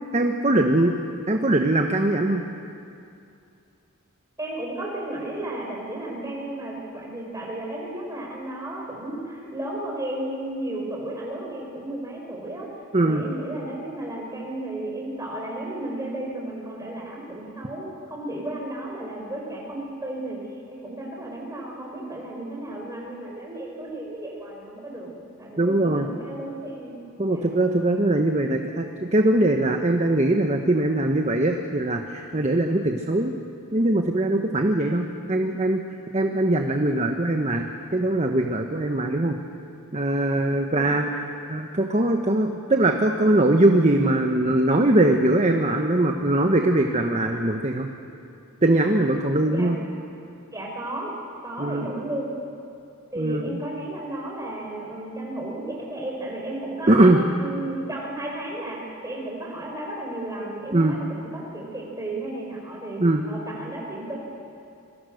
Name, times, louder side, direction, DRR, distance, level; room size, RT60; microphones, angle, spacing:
voice 1, 0.1-0.9 1.3-2.4 12.9-13.2 25.6-26.1 27.2-33.3 33.7-35.8 36.1-39.4 39.9-41.1 41.5-47.9 48.6-49.8 51.6-51.9 53.2-53.6 56.9-57.2 60.7-60.9 63.0-63.2, right 1 dB, 30° right, 3 dB, 1.2 m, -21 dB
voice 2, 4.4-12.7 13.0-20.4 20.7-25.1 25.4-27.5 40.6-41.0 49.5-49.7 50.5-51.1 51.4-52.3 53.1-64.2, right 1 dB, 15° right, -2 dB, 5.4 m, -33 dB
25.5 x 23.5 x 6.6 m, 2.6 s
head